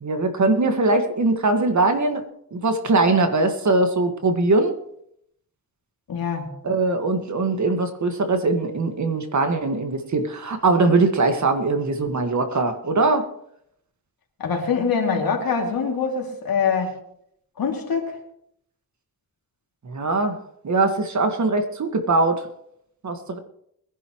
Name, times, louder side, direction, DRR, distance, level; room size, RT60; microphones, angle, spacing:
voice 1, 0.0-2.2 2.5-4.8 6.6-13.3 19.8-20.4 20.6-22.5 23.0-23.4, right 3 dB, 55° right, 1.8 m, -21 dB
voice 2, 6.1-6.5 14.4-16.9 17.6-18.1, left 6 dB, 80° left, 2.8 m, -24 dB
22.0 x 11.0 x 3.2 m
cardioid pair, 85°, 35 cm